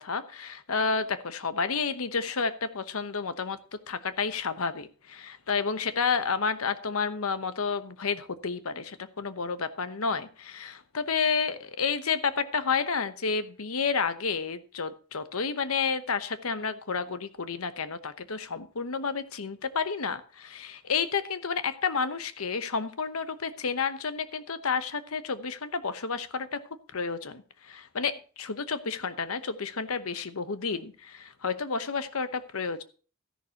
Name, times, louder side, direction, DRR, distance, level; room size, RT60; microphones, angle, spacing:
voice 1, 0.0-3.6 3.9-26.6 26.9-32.8, left 5 dB, 85° left, 11 dB, 1.0 m, -30 dB
13.5 x 11.0 x 2.9 m, 0.38 s
head